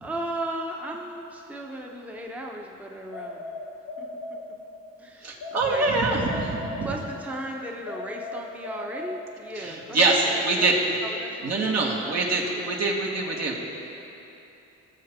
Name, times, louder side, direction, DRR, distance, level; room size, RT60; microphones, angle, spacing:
voice 1, 0.0-3.6 4.0-4.4 5.0-5.8 6.1-6.2 6.8-10.7 11.0-12.2 12.5-12.7, right 1 dB, 5° right, 0 dB, 0.9 m, -36 dB
sound 1, 3.1-4.9 5.4-7.3 7.9-9.7, left 2 dB, 85° left, 0.9 m, -37 dB
voice 2, 5.2-6.4 6.8-6.9 9.6-10.7 11.4-13.6, right 3 dB, 60° right, -2 dB, 1.9 m, -24 dB
17.5 x 7.1 x 3.7 m, 2.9 s
cardioid pair, 90°, 30 cm